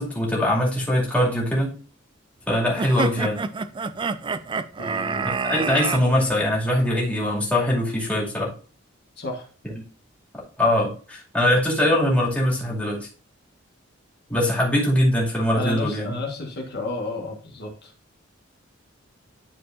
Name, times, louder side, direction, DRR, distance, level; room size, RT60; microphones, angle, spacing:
voice 1, 0.0-1.8 2.5-3.4 5.4-8.5 10.6-13.0 14.3-16.1, left 1 dB, 5° left, -4 dB, 2.4 m, -22 dB
sound 1, 2.8-6.0, right 4 dB, 25° right, 0.3 m, -27 dB
voice 2, 4.8-5.3 9.2-9.5 15.5-17.9, left 2 dB, 55° left, 0 dB, 1.4 m, -32 dB
11.0 x 4.7 x 2.6 m, 0.39 s
head